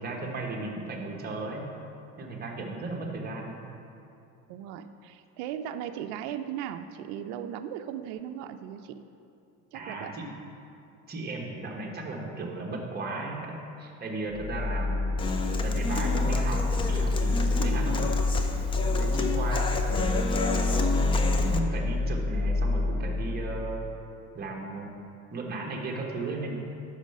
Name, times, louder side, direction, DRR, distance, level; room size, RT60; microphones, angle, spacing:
voice 1, 0.0-1.6 2.2-3.6 9.7-10.3 11.1-15.2 15.6-18.1 18.8-20.5 21.1-23.9 24.3-25.0 25.3-26.6, right 2 dB, 25° right, 0 dB, 1.1 m, -35 dB
voice 2, 4.5-9.0 9.7-10.2 17.6-17.8 19.1-19.3, right 10 dB, 75° right, 8 dB, 0.5 m, -38 dB
sound 1, 14.3-23.9, left 3 dB, 55° left, 1.1 m, -27 dB
Human voice / Acoustic guitar, 15.2-21.6, left 3 dB, 15° left, 0.3 m, -31 dB
5.6 x 5.1 x 6.4 m, 2.6 s
cardioid pair, 130°, 35 cm